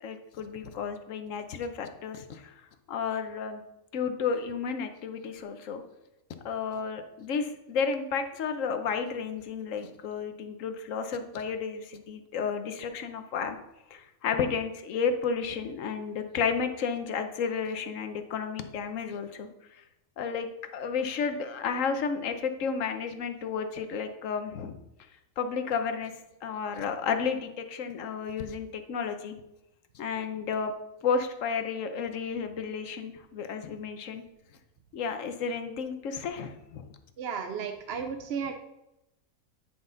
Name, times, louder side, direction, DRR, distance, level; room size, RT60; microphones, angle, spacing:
voice 1, 0.0-2.5 2.9-3.6 3.9-5.8 6.4-13.6 13.9-19.5 19.8-19.9 20.2-24.7 25.4-26.1 26.4-29.3 29.9-30.7 31.0-34.2 34.9-36.9, left 6 dB, 65° left, 8 dB, 1.2 m, -32 dB
voice 2, 37.2-38.5, right 6 dB, 55° right, 6 dB, 0.8 m, -34 dB
10.0 x 5.6 x 3.9 m, 0.89 s
omnidirectional pair, 1.5 m